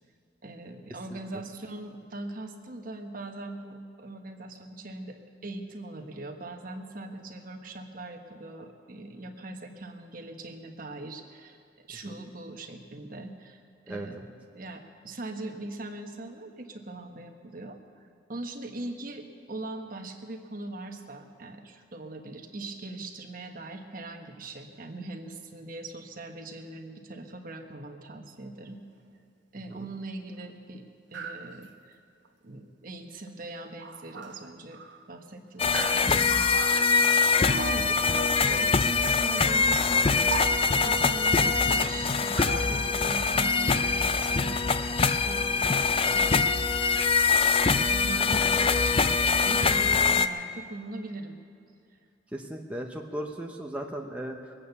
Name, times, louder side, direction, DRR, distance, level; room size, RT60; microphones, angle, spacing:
voice 1, 0.4-11.6 11.9-13.6 13.9-17.8 18.3-28.8 29.5-30.8 31.1-32.0 32.4-34.8 35.1-37.1 37.3-40.4 40.8-44.6 45.2-46.3 47.9-51.4, right 2 dB, 45° right, 4 dB, 1.2 m, -41 dB
voice 2, 13.9-14.3 39.8-40.0 46.0-46.2 52.3-54.5, right 1 dB, 5° right, 0 dB, 0.8 m, -37 dB
sound 1, 31.1-31.7 32.3-32.4 33.3-33.4 33.8-35.1 35.7-38.2 38.9-40.0 40.2-41.5 41.8-43.4 44.0-44.1, right 4 dB, 70° right, 0.9 m, -39 dB
sound 2, 35.6-50.3, left 4 dB, 30° left, 0.4 m, -24 dB
22.0 x 8.7 x 7.0 m, 2.5 s
head